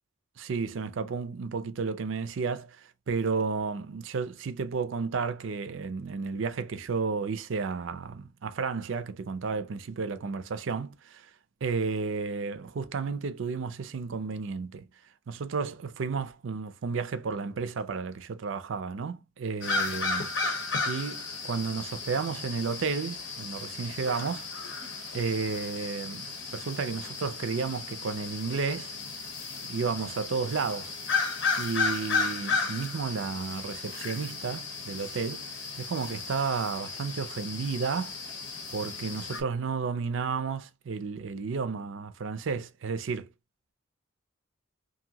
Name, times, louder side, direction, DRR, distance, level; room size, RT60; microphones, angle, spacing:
voice 1, 0.4-11.3 11.6-14.9 15.3-24.5 25.1-28.9 29.6-30.9 31.6-35.5 35.8-38.2 38.7-43.3, right 5 dB, 70° right, 0.4 m, -32 dB
sound 1, 19.6-39.4, left 4 dB, 60° left, 0.7 m, -34 dB
2.9 x 2.6 x 2.7 m
head